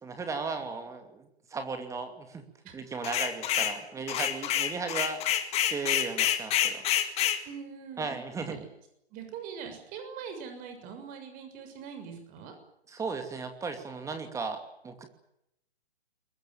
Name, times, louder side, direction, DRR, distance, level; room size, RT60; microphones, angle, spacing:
voice 1, 0.0-2.4 2.7-5.4 5.7-6.8 8.0-8.6 12.9-15.1, right 4 dB, 10° right, 7 dB, 2.6 m, -36 dB
sound 1, 3.0-3.8 4.1-7.4, left 11 dB, 20° left, 2.0 m, -27 dB
voice 2, 7.4-8.1 8.4-8.6 9.1-12.5, right 6 dB, 25° right, 7 dB, 6.5 m, -42 dB
22.5 x 21.0 x 9.2 m, 0.79 s
figure-of-eight pair, 135°, 32 cm